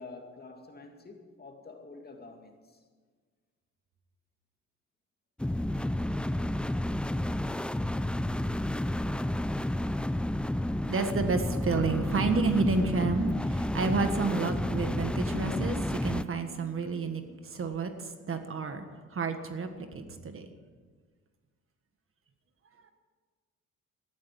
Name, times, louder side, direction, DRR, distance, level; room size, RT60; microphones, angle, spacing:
voice 1, 0.0-2.8, left 3 dB, 30° left, 2.4 m, -48 dB
sound 1, 5.4-16.2, left 1 dB, 5° left, 0.4 m, -31 dB
voice 2, 10.8-20.5, right 4 dB, 45° right, 1.6 m, -30 dB
14.0 x 11.5 x 7.6 m
cardioid pair, 90°, 30 cm